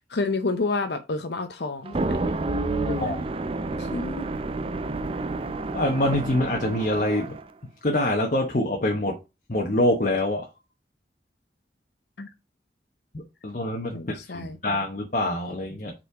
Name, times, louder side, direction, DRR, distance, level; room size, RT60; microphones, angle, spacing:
voice 1, 0.1-2.3 2.8-3.1 3.8-4.3 12.2-12.3 13.9-14.6, left 3 dB, 70° left, 0.7 m, -30 dB
sound 1, 1.8-7.5, right 2 dB, 30° right, 0.5 m, -29 dB
voice 2, 3.0-4.0 5.7-7.4 7.8-9.2 9.5-10.5 13.1-15.9, left 1 dB, 45° left, 1.1 m, -26 dB
5.5 x 4.2 x 4.9 m
head